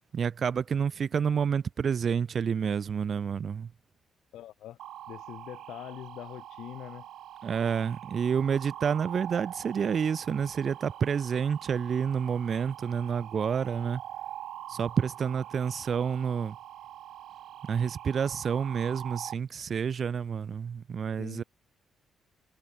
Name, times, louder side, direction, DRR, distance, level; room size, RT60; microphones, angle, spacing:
voice 1, 0.1-3.7 7.4-14.0 14.7-16.6 17.6-21.4, right 7 dB, 50° right, 1.7 m, -29 dB
voice 2, 4.3-4.8 5.1-7.1 21.2-21.4, left 13 dB, 80° left, 7.7 m, -43 dB
sound 1, 4.8-19.3, right 12 dB, 75° right, 1.8 m, -44 dB
cardioid pair, 90°, 0 cm